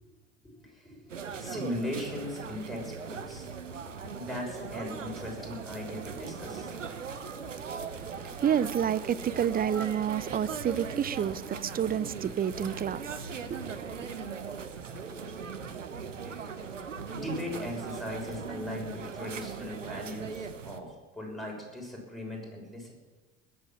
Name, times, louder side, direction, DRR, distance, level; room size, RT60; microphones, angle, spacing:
voice 1, 0.4-3.5 4.1-6.7 16.2-16.5 17.1-22.9, left 1 dB, ahead, 6.4 m, -39 dB
sound 1, 1.1-20.8, right 6 dB, 90° right, 1.0 m, -39 dB
sound 2, 3.3-18.4, left 5 dB, 75° left, 2.5 m, -51 dB
voice 2, 8.0-14.1, right 9 dB, 25° right, 0.6 m, -30 dB
sound 3, 15.1-20.2, right 8 dB, 70° right, 2.5 m, -51 dB
20.0 x 8.1 x 7.6 m
figure-of-eight pair, 70°, 37 cm